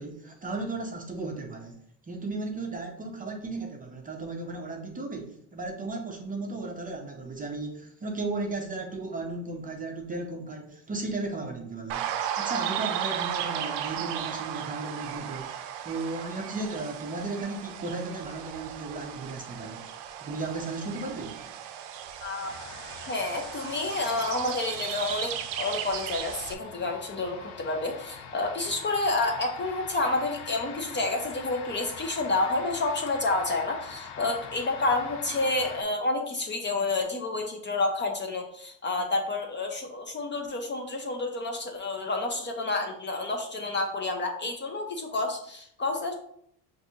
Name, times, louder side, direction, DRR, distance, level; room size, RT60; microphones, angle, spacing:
voice 1, 0.0-1.8 2.0-19.9 20.2-21.5, right 3 dB, 20° right, 2 dB, 0.5 m, -35 dB
sound 1, 11.9-26.5, right 9 dB, 90° right, 0.5 m, -35 dB
voice 2, 22.2-22.5 23.1-46.1, left 2 dB, 30° left, 3 dB, 0.5 m, -29 dB
sound 2, 22.4-35.8, left 6 dB, 70° left, 0.7 m, -44 dB
5.8 x 2.6 x 2.7 m, 0.68 s
cardioid pair, 135°, 41 cm